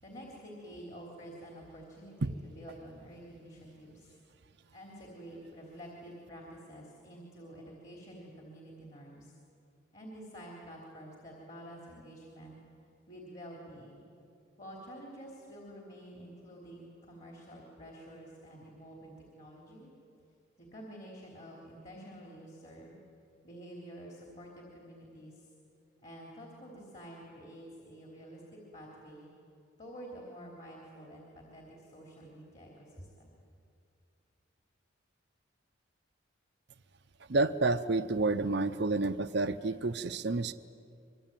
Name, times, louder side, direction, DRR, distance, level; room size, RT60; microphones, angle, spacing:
voice 1, 0.0-4.2 4.7-9.4 9.9-12.6 13.1-14.1 14.6-19.9 20.6-23.0 23.4-25.5 26.0-29.3 29.8-33.3, equal, 35° left, -1 dB, 3.5 m, -49 dB
voice 2, 37.3-40.5, right 3 dB, 55° right, 10 dB, 0.7 m, -29 dB
25.0 x 23.0 x 9.1 m, 2.5 s
head